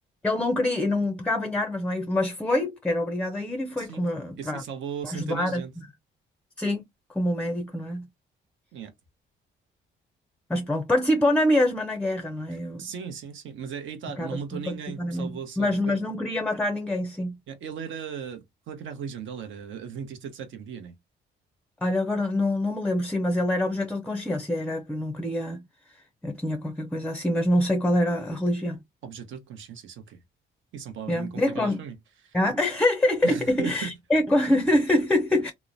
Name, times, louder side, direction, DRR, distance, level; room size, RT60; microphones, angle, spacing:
voice 1, 0.2-4.6 5.0-5.6 6.6-6.8 7.1-8.1 10.5-12.9 14.2-17.4 21.8-25.6 26.2-28.8 31.1-31.8 32.3-35.5, left 1 dB, 5° left, 0.4 m, -25 dB
voice 2, 4.4-5.7 8.7-8.9 12.5-16.0 17.5-20.9 29.0-30.2 30.7-32.0 32.2-32.4 33.2-33.9, right 7 dB, 75° right, 0.8 m, -37 dB
2.9 x 2.1 x 2.5 m
cardioid pair, 90°, 20 cm